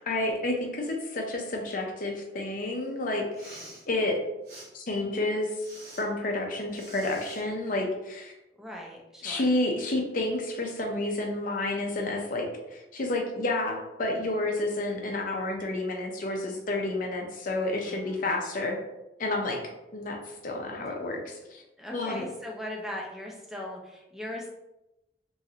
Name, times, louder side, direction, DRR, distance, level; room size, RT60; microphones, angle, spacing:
voice 1, 0.0-4.2 4.7-5.5 6.0-8.3 9.2-12.5 12.7-18.8 19.2-19.6 19.9-21.6 21.9-22.2, left 2 dB, 50° left, 1 dB, 0.5 m, -30 dB
Respiratory sounds, 3.2-3.8 4.4-4.7 5.5-6.0 6.7-7.4, right 1 dB, 60° right, 1.3 m, -47 dB
voice 2, 8.6-9.5 17.9-18.3 20.9-21.0 21.8-24.5, left 1 dB, ahead, -2 dB, 0.5 m, -39 dB
3.1 x 2.5 x 2.7 m, 0.94 s
head